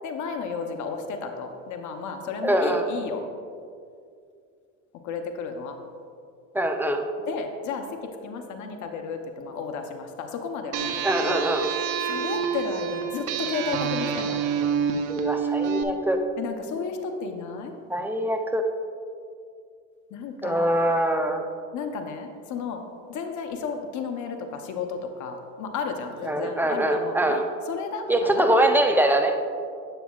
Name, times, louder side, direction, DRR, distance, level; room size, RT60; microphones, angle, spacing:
voice 1, 0.0-3.2 5.0-5.8 7.3-7.9 8.2-10.9 11.2-11.4 12.1-14.4 16.4-17.7 20.1-20.7 21.7-22.8 23.1-27.4 27.7-28.5, left 5 dB, 50° left, 5 dB, 0.8 m, -33 dB
voice 2, 2.4-2.9 6.5-7.1 11.0-11.7 15.1-16.2 17.9-18.7 20.4-21.4 26.2-27.5 28.1-29.4, right 1 dB, 5° right, 4 dB, 0.5 m, -23 dB
sound 1, 10.7-15.8, right 7 dB, 55° right, 0.7 m, -28 dB
9.0 x 7.1 x 2.4 m, 2.3 s
supercardioid pair, 90°, 39 cm